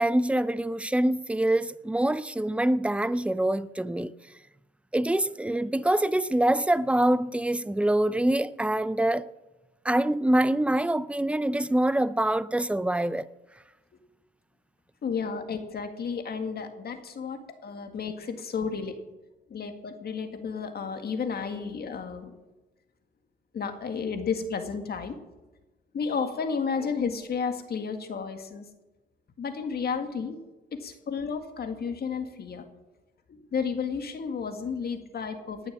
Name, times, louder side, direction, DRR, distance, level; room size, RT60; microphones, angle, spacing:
voice 1, 0.0-4.1 4.9-9.3 9.8-13.3, right 1 dB, 5° right, 0.5 m, -25 dB
voice 2, 15.0-19.0 19.5-22.3 23.5-25.2 25.9-28.7 29.4-30.4 30.7-32.6 33.3-35.6, left 5 dB, 50° left, 1.9 m, -32 dB
19.0 x 6.9 x 7.4 m
cardioid pair, 90°, 20 cm